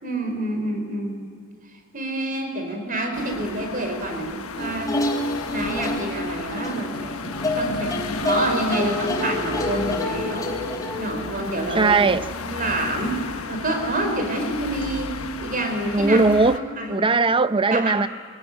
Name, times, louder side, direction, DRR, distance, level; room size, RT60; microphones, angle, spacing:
voice 1, 0.0-1.2 1.9-5.0 5.5-10.5 11.0-12.0 12.4-13.2 13.5-16.2 16.5-17.1 17.7-18.0, right 1 dB, 40° right, 4.6 m, -28 dB
sound 1, 3.1-16.6, left 4 dB, 85° left, 1.3 m, -33 dB
sound 2, 4.6-11.0, left 1 dB, 15° left, 3.7 m, -28 dB
voice 2, 11.7-12.3 15.9-16.6 16.9-18.1, right 3 dB, 25° right, 0.6 m, -19 dB
23.0 x 18.0 x 9.8 m
head